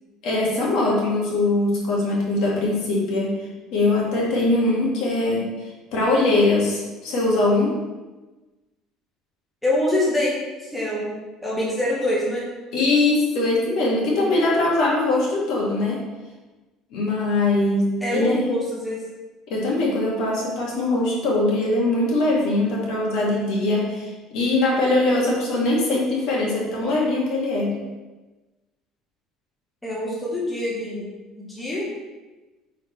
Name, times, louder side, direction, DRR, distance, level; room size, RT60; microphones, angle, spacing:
voice 1, 0.2-3.3 3.7-7.7 12.7-16.0 16.9-18.4 19.5-27.7, left 2 dB, 55° left, -3 dB, 1.9 m, -21 dB
voice 2, 9.6-10.3 10.6-11.1 11.4-12.5 18.0-19.0 29.8-31.1 31.4-31.9, left 1 dB, 5° left, -6 dB, 1.0 m, -25 dB
8.5 x 4.1 x 3.2 m, 1.2 s
cardioid pair, 175°, 0 cm